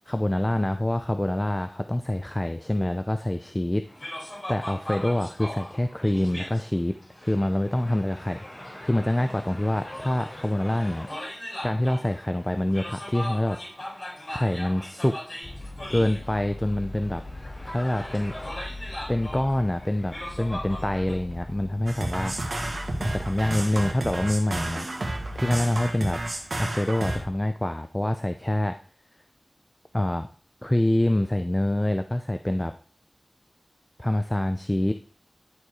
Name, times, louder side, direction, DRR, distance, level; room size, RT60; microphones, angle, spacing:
voice 1, 0.1-3.8 4.5-11.2 11.6-13.6 14.3-15.2 15.9-17.2 17.6-18.4 18.8-22.4 23.0-24.9 25.3-26.2 26.6-28.8 29.9-30.3 30.6-32.7 34.0-34.9, left 1 dB, 20° left, 8 dB, 0.6 m, -26 dB
sound 1, 3.9-21.1, left 1 dB, 40° left, 3.7 m, -39 dB
sound 2, 15.4-23.2, left 2 dB, 55° left, 5.6 m, -40 dB
sound 3, 21.9-27.2, right 1 dB, 70° right, 1.9 m, -31 dB
11.0 x 4.7 x 4.8 m, 0.41 s
wide cardioid pair, 60°, 0 cm